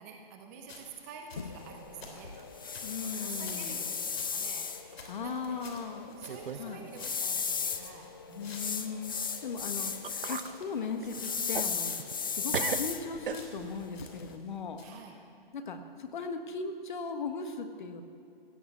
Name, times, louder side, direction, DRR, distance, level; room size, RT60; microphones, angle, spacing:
voice 1, 0.0-2.3 3.0-5.7 6.2-8.6 14.8-15.1, right 6 dB, 15° right, 2 dB, 0.8 m, -49 dB
sound 1, 0.7-4.4 4.6-4.7 5.0-6.7 7.0-10.8 11.2-11.6 11.9-12.1 12.4-12.9 13.3-14.5 14.8-15.0, left 3 dB, 85° left, 3.1 m, -52 dB
sound 2, 1.4-14.4, left 6 dB, 25° left, 0.4 m, -37 dB
sound 3, 1.9-2.8 3.0-3.5 4.0-4.1 4.9-5.0 5.8-5.9 6.3-6.7 7.0-7.1 9.6-9.7 10.0-10.5 11.0-12.3 12.5-13.8, right 7 dB, 60° right, 0.9 m, -38 dB
voice 2, 2.8-3.8 5.1-6.2 6.6-6.8 8.4-9.9 10.2-11.9 12.3-14.8 15.5-18.1, left 5 dB, 55° left, 7 dB, 1.4 m, -38 dB
16.0 x 8.1 x 8.3 m, 2.5 s
hypercardioid pair, 160°, 30 cm